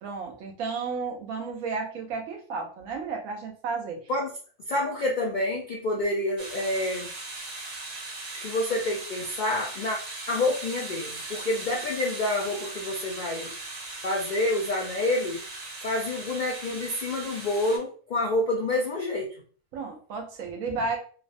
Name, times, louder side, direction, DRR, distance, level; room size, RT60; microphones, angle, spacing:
voice 1, 0.0-4.0 19.7-21.0, right 4 dB, 90° right, 2 dB, 1.1 m, -32 dB
voice 2, 4.7-7.1 8.4-10.0 10.3-13.5 14.0-15.4 15.8-19.3, left 2 dB, 75° left, -1 dB, 0.4 m, -28 dB
sound 1, 6.4-17.8, right 2 dB, 50° right, 0.4 m, -39 dB
3.1 x 2.0 x 2.5 m, 0.42 s
omnidirectional pair, 1.4 m